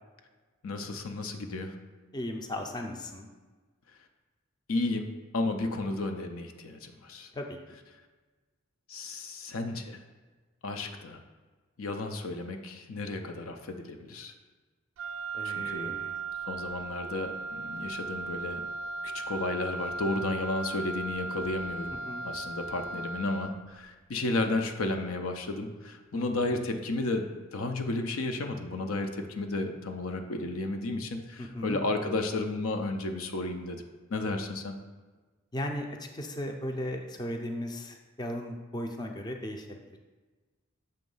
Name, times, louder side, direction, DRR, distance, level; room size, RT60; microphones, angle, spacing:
voice 1, 0.6-1.7 4.7-5.1 5.3-7.3 8.9-10.0 10.6-11.2 11.8-14.3 15.4-15.9 16.4-18.6 19.1-21.9 22.2-33.8 34.1-34.7, left 2 dB, 90° left, 5 dB, 0.6 m, -33 dB
voice 2, 2.1-3.3 7.3-7.8 15.3-16.2 21.9-22.2 26.1-26.5 31.4-31.8 35.5-39.7, left 1 dB, 20° left, 3 dB, 0.4 m, -36 dB
Wind instrument woodwind instrument, 15.0-23.7, right 3 dB, 65° right, 0.4 m, -37 dB
6.8 x 3.1 x 5.4 m, 1.3 s
head